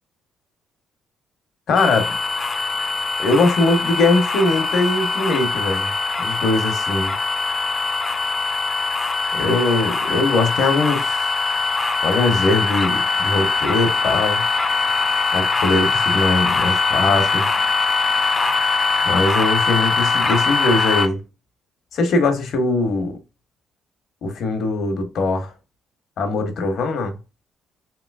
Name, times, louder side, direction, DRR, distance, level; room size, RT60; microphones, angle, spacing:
voice 1, 1.7-2.2 3.2-5.9 6.2-7.1 9.3-11.2 12.0-14.4 15.3-17.5 19.0-21.2 21.9-23.2 24.2-25.5 26.2-27.1, left 3 dB, 60° left, 0.9 m, -21 dB
sound 1, 1.7-21.1, left 3 dB, 20° left, 0.5 m, -22 dB
3.0 x 2.9 x 2.4 m
cardioid pair, 125°, 0 cm